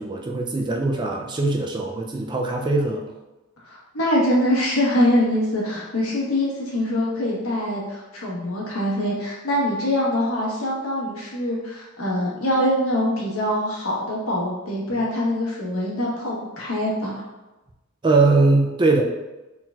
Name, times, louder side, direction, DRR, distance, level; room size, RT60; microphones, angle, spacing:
voice 1, 0.0-3.0 18.0-19.0, right 3 dB, 20° right, 1 dB, 0.4 m, -21 dB
voice 2, 3.7-17.2, left 1 dB, 85° left, -4 dB, 1.2 m, -24 dB
4.2 x 3.9 x 2.4 m, 1.1 s
head